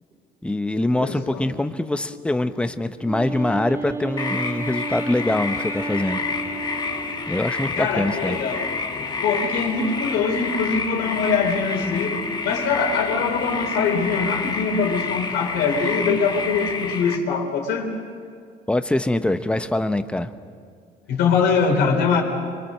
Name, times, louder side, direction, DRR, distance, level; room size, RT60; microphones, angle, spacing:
voice 1, 0.4-6.2 7.3-8.4 18.7-20.3, left 1 dB, 5° left, 9 dB, 0.9 m, -24 dB
voice 2, 1.0-1.4 7.8-8.7 8.9-17.9 21.1-22.2, left 5 dB, 80° left, 2 dB, 4.0 m, -23 dB
Wind instrument woodwind instrument, 3.0-7.7, right 3 dB, 15° right, 1.4 m, -33 dB
sound 1, 4.2-17.2, left 4 dB, 25° left, 1.5 m, -29 dB
sound 2, 5.8-17.0, left 7 dB, 60° left, 1.9 m, -39 dB
25.5 x 24.0 x 6.5 m, 2.2 s
cardioid pair, 110°, 17 cm